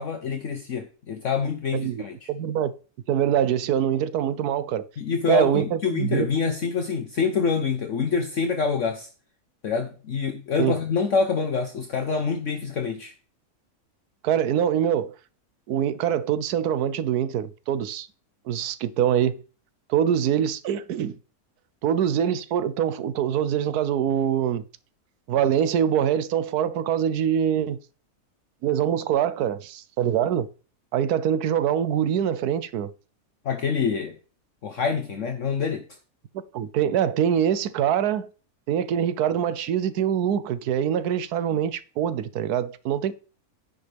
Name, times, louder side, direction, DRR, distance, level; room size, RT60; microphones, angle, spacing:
voice 1, 0.0-2.3 5.0-9.1 9.6-13.1 33.4-34.1 34.6-35.8, left 5 dB, 60° left, 1.2 m, -26 dB
voice 2, 1.7-2.0 2.3-2.7 3.1-4.9 5.3-6.3 10.6-10.7 14.2-15.1 15.7-18.1 18.5-19.4 19.9-21.2 21.8-24.6 25.3-27.8 28.6-30.5 30.9-32.9 36.5-38.3 38.7-43.1, right 9 dB, 85° right, 1.2 m, -24 dB
10.0 x 8.0 x 3.4 m
omnidirectional pair, 1.6 m